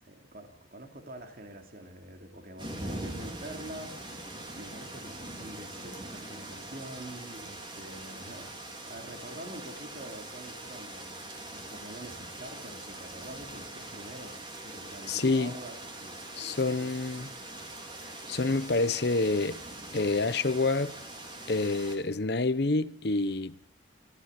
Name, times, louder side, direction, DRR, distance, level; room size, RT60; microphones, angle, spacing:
voice 1, 0.0-16.9, right 1 dB, 45° right, 2.9 m, -46 dB
sound 1, 2.6-22.0, right 1 dB, 25° right, 3.9 m, -42 dB
voice 2, 15.1-15.5 16.4-17.3 18.3-19.6 19.9-21.0 21.5-23.6, left 3 dB, 55° left, 0.8 m, -28 dB
25.0 x 15.0 x 8.1 m
head